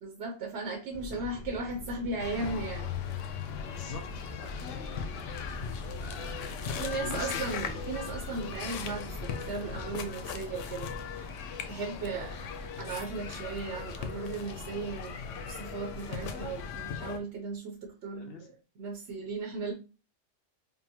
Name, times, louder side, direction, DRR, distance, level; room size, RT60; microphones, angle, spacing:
voice 1, 0.0-2.9 6.8-11.3 11.7-12.4 12.8-15.1 15.4-19.7, right 3 dB, 70° right, 2 dB, 0.9 m, -37 dB
sound 1, 0.9-16.9, left 1 dB, 15° left, 1.1 m, -44 dB
sound 2, 2.2-17.2, left 7 dB, 85° left, 0.9 m, -39 dB
voice 2, 3.6-4.0 4.3-5.1 6.0-7.4 18.1-18.5, left 5 dB, 60° left, 3 dB, 0.8 m, -44 dB
5.4 x 2.0 x 2.8 m, 0.33 s
omnidirectional pair, 1.2 m